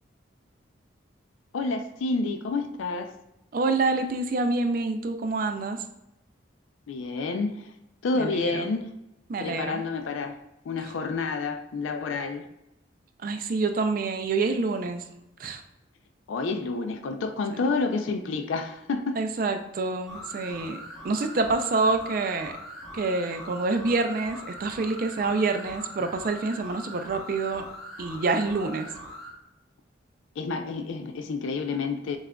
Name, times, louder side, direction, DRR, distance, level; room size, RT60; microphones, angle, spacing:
voice 1, 1.5-3.1 6.9-7.7 8.0-8.9 9.4-10.4 10.7-12.5 16.3-19.2 30.4-32.2, left 3 dB, 80° left, 7 dB, 0.4 m, -29 dB
voice 2, 3.5-5.8 8.1-8.7 9.3-9.8 13.2-15.0 15.4-15.6 19.2-22.5 22.9-27.6 28.0-28.9, right 3 dB, 45° right, 6 dB, 0.4 m, -27 dB
sound 1, 20.1-29.3, left 1 dB, ahead, 1.1 m, -42 dB
6.9 x 2.4 x 2.2 m, 0.88 s
head